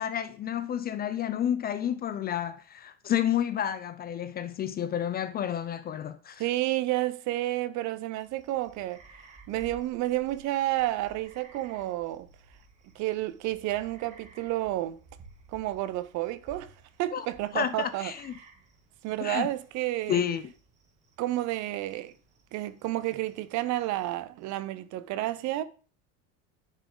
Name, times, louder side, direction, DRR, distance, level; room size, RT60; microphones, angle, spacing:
voice 1, 0.0-6.4 17.1-17.3 17.5-18.3 19.2-19.5 20.1-20.4, left 10 dB, 25° left, 0.4 m, -30 dB
voice 2, 6.4-9.0 9.5-12.3 12.9-15.0 15.5-16.7 17.0-18.1 19.0-20.2 21.2-22.1 22.5-25.6, right 16 dB, 50° right, 0.8 m, -30 dB
sound 1, 8.2-24.4, right 3 dB, 20° right, 1.9 m, -56 dB
10.5 x 6.8 x 3.9 m
cardioid pair, 155°, 37 cm